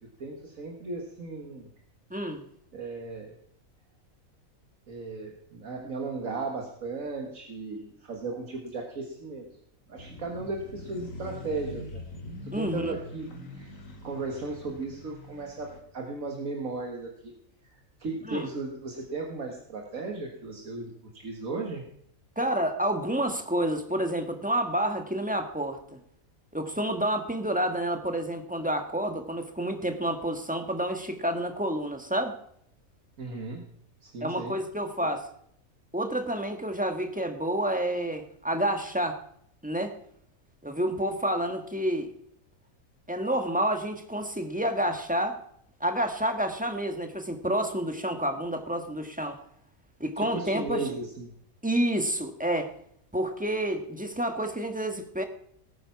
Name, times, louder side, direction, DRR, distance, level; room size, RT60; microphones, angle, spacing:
voice 1, 0.2-1.7 2.7-3.3 4.9-9.5 9.9-12.0 12.4-13.3 13.5-13.7 14.0-17.3 17.6-21.8 33.2-33.6 34.0-34.6 35.0-35.1 50.2-51.3, right 3 dB, 70° right, 1 dB, 2.1 m, -36 dB
voice 2, 2.1-2.4 12.5-12.9 18.3-18.5 22.4-25.8 26.5-32.3 34.2-35.3 35.9-39.2 39.6-39.9 40.6-42.1 43.1-45.4 45.8-49.4 50.0-50.9 51.6-52.7 53.1-55.2, right 1 dB, 5° right, 5 dB, 1.4 m, -29 dB
sound 1, 10.0-15.8, left 1 dB, 70° left, 2.5 m, -43 dB
19.5 x 9.0 x 5.9 m, 0.70 s
omnidirectional pair, 1.5 m